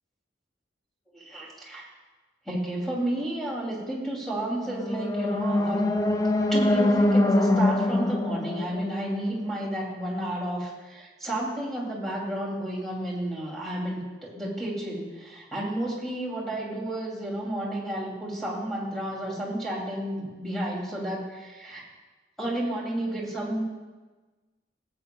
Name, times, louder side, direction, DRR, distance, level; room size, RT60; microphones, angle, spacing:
voice 1, 1.1-1.9 2.5-5.9 6.5-21.8 22.4-23.6, right 1 dB, ahead, -5 dB, 2.7 m, -31 dB
sound 1, 4.7-9.8, left 1 dB, 20° left, 0.4 m, -24 dB
17.0 x 8.8 x 2.3 m, 1.3 s
head